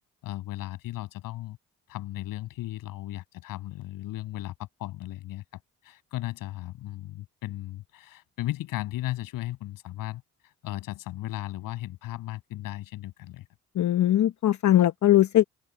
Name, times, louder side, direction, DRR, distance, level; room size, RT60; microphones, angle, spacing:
voice 1, 0.2-1.6 1.9-5.4 5.8-13.5, left 16 dB, 80° left, 7.7 m, -36 dB
voice 2, 13.7-15.4, left 13 dB, 60° left, 1.0 m, -20 dB
open air
supercardioid pair, 65°, 33 cm